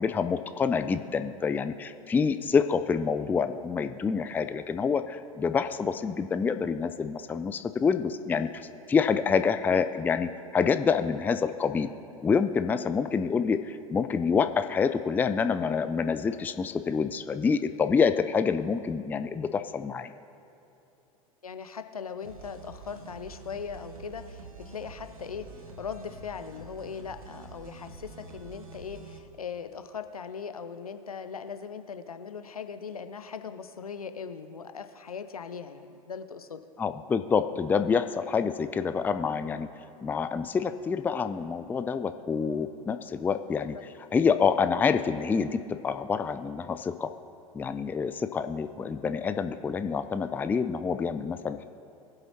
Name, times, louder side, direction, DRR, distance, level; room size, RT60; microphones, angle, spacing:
voice 1, 0.0-11.9 12.2-20.1 36.8-39.7 40.0-43.8 44.1-47.1 47.5-51.7, left 5 dB, 10° left, 10 dB, 0.3 m, -27 dB
voice 2, 21.4-36.6 43.7-43.8, left 6 dB, 80° left, 10 dB, 0.6 m, -39 dB
sound 1, 22.2-29.2, right 4 dB, 75° right, 1.2 m, -47 dB
21.0 x 7.9 x 2.9 m, 2.8 s
figure-of-eight pair, 85°, 18 cm